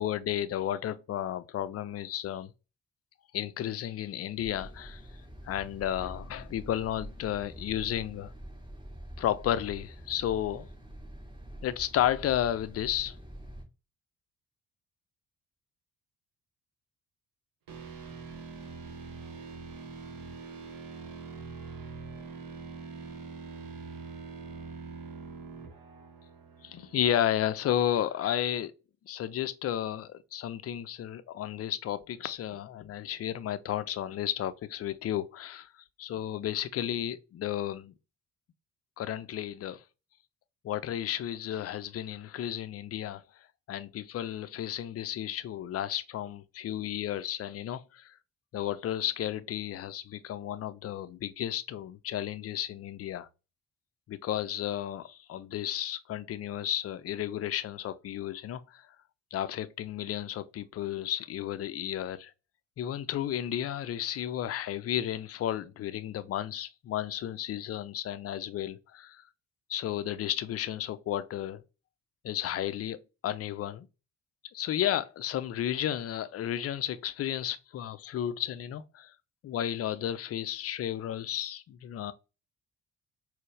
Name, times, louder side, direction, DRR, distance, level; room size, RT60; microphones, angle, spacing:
voice 1, 0.0-2.5 3.3-5.0 5.4-8.3 9.2-10.7 11.6-13.2 26.6-28.7 29.1-35.7 36.0-37.9 39.0-39.8 40.6-43.2 43.7-48.1 48.5-53.3 54.1-58.8 59.3-62.3 62.8-69.2 69.7-71.6 72.2-73.9 74.5-79.1 79.4-82.1, left 11 dB, 35° left, 0.4 m, -33 dB
sound 1, 4.4-13.6, right 1 dB, 10° right, 1.2 m, -46 dB
sound 2, 17.7-27.6, right 4 dB, 55° right, 1.0 m, -44 dB
4.2 x 2.0 x 3.2 m
hypercardioid pair, 45°, 41 cm